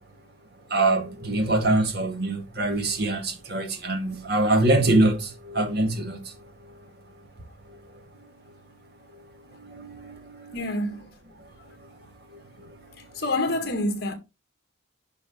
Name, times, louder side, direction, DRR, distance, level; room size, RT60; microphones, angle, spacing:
voice 1, 0.7-6.2 9.6-10.6, right 2 dB, 50° right, 2.1 m, -24 dB
voice 2, 10.5-11.1 13.1-14.1, left 1 dB, 50° left, 2.0 m, -27 dB
10.5 x 5.2 x 3.8 m
head